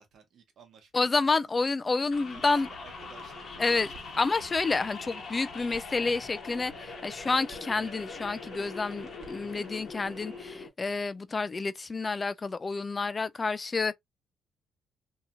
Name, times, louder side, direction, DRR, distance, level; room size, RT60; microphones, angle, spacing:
voice 1, 0.0-1.6 2.3-4.4, right 6 dB, 65° right, 0.9 m, -55 dB
voice 2, 0.9-2.7 3.6-3.9 4.2-14.0, left 3 dB, 30° left, 0.3 m, -29 dB
sound 1, 2.1-10.7, left 4 dB, 55° left, 1.0 m, -42 dB
sound 2, 2.1-10.6, right 5 dB, 50° right, 1.2 m, -53 dB
2.8 x 2.7 x 2.2 m
cardioid pair, 90°, 0 cm